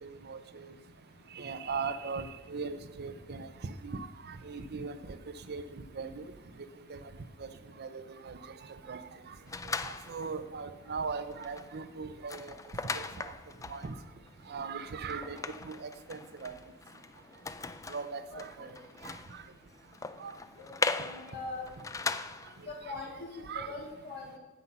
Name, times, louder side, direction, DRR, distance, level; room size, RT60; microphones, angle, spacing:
voice 1, 0.0-0.7 1.3-5.2 5.5-6.3 6.9-7.1 7.4-7.5 7.8-8.4 8.9-9.0 9.3-9.4 9.8-12.5 12.9-13.3 13.7-13.9 14.5-15.4 15.6-16.5 17.9-18.7 19.0-19.2 20.2-20.3 22.9-23.0 23.5-23.7, right 5 dB, 50° right, 10 dB, 0.6 m, -39 dB
sound 1, 9.5-10.4 10.9-11.0 11.3-22.6, left 4 dB, 15° left, 0.3 m, -39 dB
voice 2, 20.6-21.6 22.7-24.4, left 3 dB, 50° left, -2 dB, 3.0 m, -42 dB
9.6 x 8.2 x 5.8 m, 1.1 s
head